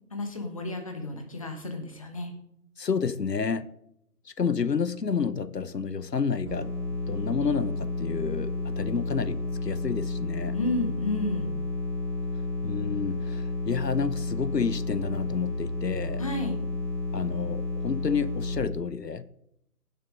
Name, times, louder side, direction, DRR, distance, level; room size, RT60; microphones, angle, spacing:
voice 1, 0.1-2.3 10.5-11.5 16.2-16.6, left 2 dB, 20° left, 4 dB, 1.1 m, -32 dB
voice 2, 2.8-3.7 4.2-6.7 7.1-10.6 12.6-16.2 17.1-19.2, left 6 dB, 80° left, 16 dB, 0.8 m, -30 dB
sound 1, 6.5-18.6, left 2 dB, 15° right, 2.8 m, -31 dB
16.0 x 6.7 x 5.0 m, 0.77 s
figure-of-eight pair, 150°, 48 cm